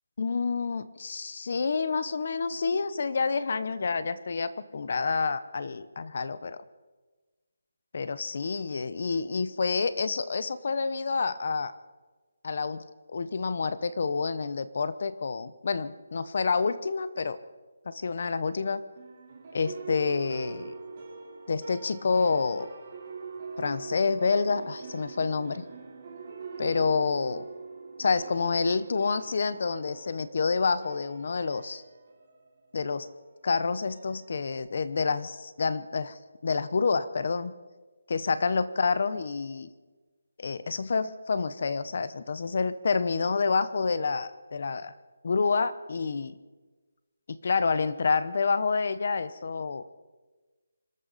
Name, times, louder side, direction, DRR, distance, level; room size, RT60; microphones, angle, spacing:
voice 1, 0.2-6.6 7.9-11.7 12.4-17.4 17.9-18.8 19.5-20.8 21.5-22.7 23.6-25.7 26.6-27.5 28.0-31.8 32.7-33.1 33.4-37.5 38.1-39.7 40.4-44.9 45.2-46.4 47.3-49.8, left 4 dB, 40° left, 14 dB, 0.9 m, -28 dB
sound 1, 18.9-34.5, right 4 dB, 25° right, 3.3 m, -43 dB
26.5 x 13.0 x 4.2 m, 1.3 s
hypercardioid pair, 175°, 0 cm